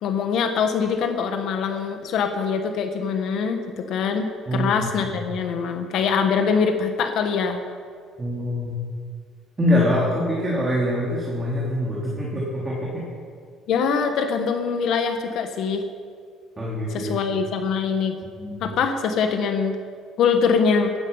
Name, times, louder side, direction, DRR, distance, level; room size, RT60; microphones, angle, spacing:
voice 1, 0.0-7.6 13.7-15.8 16.9-18.2 18.6-19.8 20.2-20.9, left 6 dB, 60° left, 6 dB, 1.3 m, -23 dB
voice 2, 8.2-8.7 9.6-13.0 16.6-17.1 18.4-18.6, left 1 dB, 20° right, -6 dB, 3.2 m, -24 dB
17.5 x 13.0 x 5.5 m, 2.1 s
cardioid pair, 150°, 0 cm